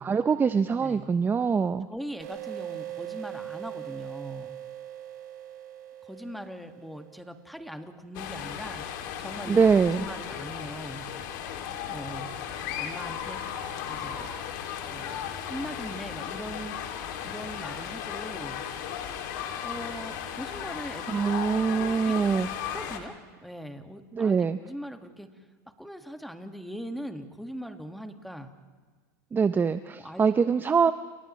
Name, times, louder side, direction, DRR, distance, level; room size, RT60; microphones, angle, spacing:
voice 1, 0.0-1.9 9.5-10.1 21.1-22.5 24.1-24.6 29.3-30.9, right 6 dB, 20° right, 12 dB, 0.6 m, -24 dB
voice 2, 0.8-1.1 1.9-4.6 6.0-8.9 9.2-9.7 10.0-11.1 11.8-12.3 12.8-13.4 13.9-14.3 14.8-16.8 17.2-18.6 19.6-21.2 21.8-22.2 22.7-24.4 24.6-25.3 25.8-28.5 29.9-30.3 30.8-30.9, equal, ahead, 5 dB, 1.9 m, -40 dB
sound 1, 2.2-7.5, right 12 dB, 80° right, 3.7 m, -41 dB
sound 2, 8.1-23.0, left 9 dB, 70° left, 2.7 m, -36 dB
30.0 x 29.0 x 3.2 m, 1.5 s
hypercardioid pair, 100°, 10 cm